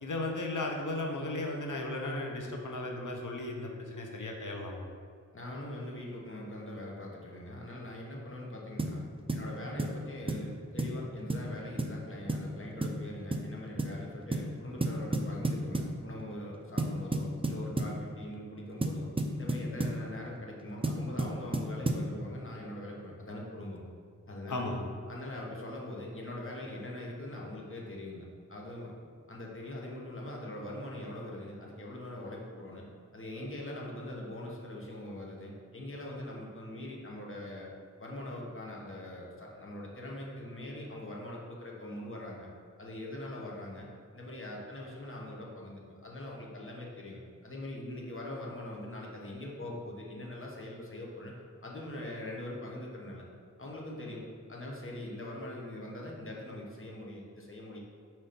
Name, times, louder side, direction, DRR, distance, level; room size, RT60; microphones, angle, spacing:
voice 1, 0.0-4.8 24.5-24.8, left 2 dB, 70° left, 1 dB, 0.9 m, -35 dB
voice 2, 5.3-9.0 9.3-19.1 19.4-23.9 24.3-24.7 25.1-28.9 29.3-32.8 33.1-37.7 38.0-42.5 42.8-43.9 44.1-51.3 51.6-53.3 53.6-54.2 54.5-57.8, left 1 dB, 40° left, -2 dB, 1.2 m, -42 dB
sound 1, 8.8-9.0 9.3-9.5 9.8-10.0 10.3-10.5 10.8-11.0 11.3-11.5 11.8-12.0 12.3-12.5 12.8-13.0 13.3-13.5 13.8-14.0 14.3-14.5 14.8-16.0 16.8-18.0 18.8-20.0 20.8-22.1, right 2 dB, 15° right, 0.5 m, -31 dB
4.5 x 4.3 x 5.2 m, 2.2 s
wide cardioid pair, 70°, 32 cm